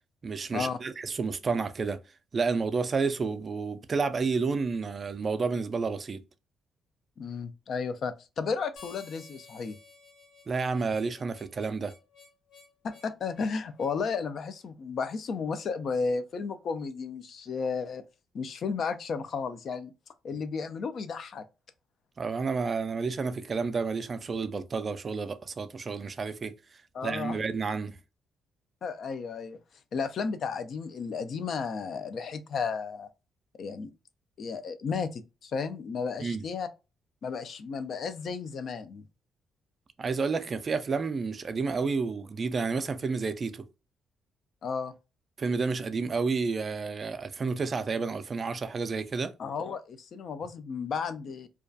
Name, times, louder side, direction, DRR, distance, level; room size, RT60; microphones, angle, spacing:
voice 1, 0.2-2.0 2.3-6.2 10.5-11.9 20.3-20.4 22.2-26.5 27.0-28.0 36.2-36.4 40.0-43.7 45.4-49.3, right 4 dB, 40° right, 0.3 m, -30 dB
voice 2, 7.2-9.8 12.8-18.0 18.3-19.9 20.2-21.4 26.9-27.4 28.8-29.6 29.9-33.1 33.6-33.9 34.4-36.7 37.2-39.0 44.6-44.9 49.4-51.5, left 5 dB, 55° left, 0.3 m, -33 dB
Harmonica, 8.8-14.0, left 4 dB, 85° left, 0.8 m, -54 dB
2.2 x 2.2 x 2.5 m
cardioid pair, 90°, 0 cm